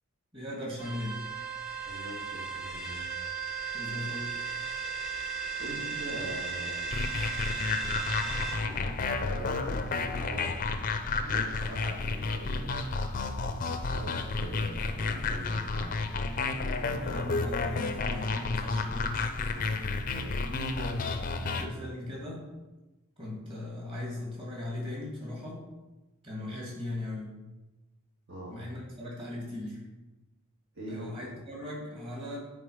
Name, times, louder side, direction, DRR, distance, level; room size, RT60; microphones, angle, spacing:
voice 1, 0.3-1.2 3.7-4.4 16.9-19.3 20.5-22.4 23.2-25.6 26.2-27.3 28.5-29.8 30.9-32.4, left 1 dB, 25° right, -4 dB, 2.2 m, -38 dB
sound 1, 0.8-8.6, right 5 dB, ahead, 0.9 m, -36 dB
voice 2, 1.8-3.1 5.6-6.9 8.3-12.7 13.0-16.0 16.5-16.9 19.5-19.7 20.1-20.4 28.3-28.6 30.7-31.0, right 1 dB, 55° right, -6 dB, 1.7 m, -43 dB
sound 2, 6.9-21.7, left 3 dB, 40° left, 0.5 m, -31 dB
8.9 x 3.8 x 4.9 m, 1.1 s
head